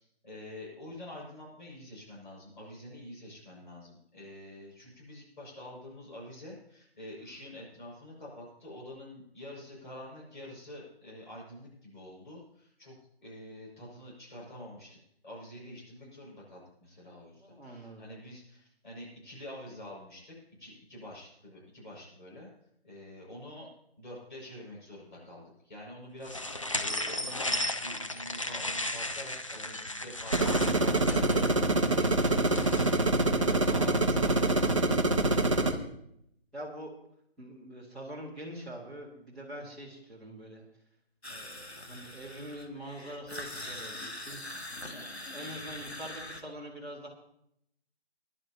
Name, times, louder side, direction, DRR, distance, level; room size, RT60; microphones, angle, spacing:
voice 1, 0.0-12.9 13.2-15.0 15.2-20.3 20.6-22.5 22.8-23.7 24.0-34.9, left 1 dB, 50° left, -4 dB, 6.1 m, -47 dB
voice 2, 17.4-18.0 35.5-35.9 36.5-36.9 37.4-40.6 41.3-44.4 44.9-47.1, right 1 dB, ahead, -11 dB, 1.9 m, -44 dB
sound 1, 26.2-33.1, left 1 dB, 30° left, 0.5 m, -35 dB
sound 2, 30.3-35.7, right 2 dB, 30° right, 0.9 m, -25 dB
sound 3, 41.2-46.4, left 1 dB, 85° left, 1.8 m, -42 dB
22.0 x 11.0 x 2.9 m, 0.74 s
figure-of-eight pair, 155°, 32 cm